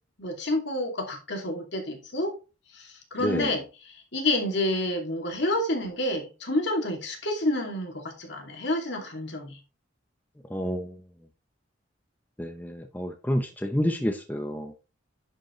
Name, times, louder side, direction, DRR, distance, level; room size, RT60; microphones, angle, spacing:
voice 1, 0.2-2.3 2.7-9.6, left 1 dB, 60° left, 1 dB, 2.6 m, -29 dB
voice 2, 3.2-3.5 10.5-10.9 12.4-14.8, equal, 10° left, 5 dB, 0.7 m, -29 dB
11.0 x 5.2 x 3.2 m, 0.31 s
head